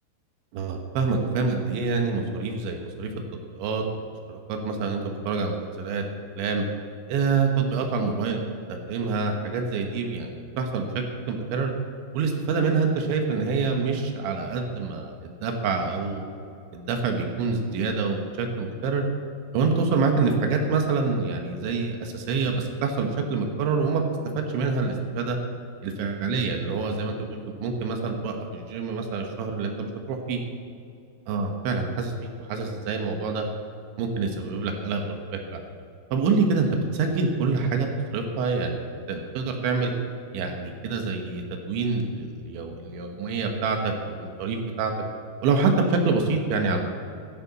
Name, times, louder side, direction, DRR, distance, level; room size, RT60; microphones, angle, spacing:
voice 1, 0.5-3.8 4.3-6.0 6.4-6.6 7.1-8.4 8.7-11.7 12.1-16.3 16.7-19.0 19.5-24.0 24.4-25.4 25.8-30.4 31.3-33.5 34.0-35.6 36.1-39.9 40.3-44.9 45.4-46.8, right 4 dB, 70° right, 3 dB, 3.4 m, -26 dB
15.5 x 14.0 x 4.2 m, 2.6 s
omnidirectional pair, 5.9 m